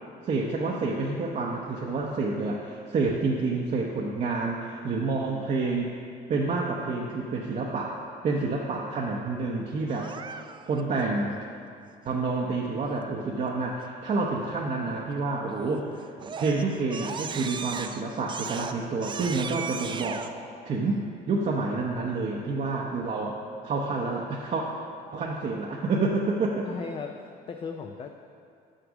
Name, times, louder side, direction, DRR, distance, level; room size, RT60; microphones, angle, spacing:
voice 1, 0.2-5.9 6.3-8.0 8.2-10.1 10.7-11.4 12.0-16.1 16.4-20.3 20.6-23.4 23.6-24.6 25.1-26.7, right 3 dB, 45° right, -2 dB, 0.8 m, -28 dB
Crying sobbing, 9.9-10.8 15.5-15.8 16.2-20.3, right 6 dB, 30° right, 0.4 m, -37 dB
voice 2, 26.6-28.1, left 5 dB, 30° left, 4 dB, 0.5 m, -37 dB
6.5 x 6.0 x 6.1 m, 2.4 s
cardioid pair, 110°, 17 cm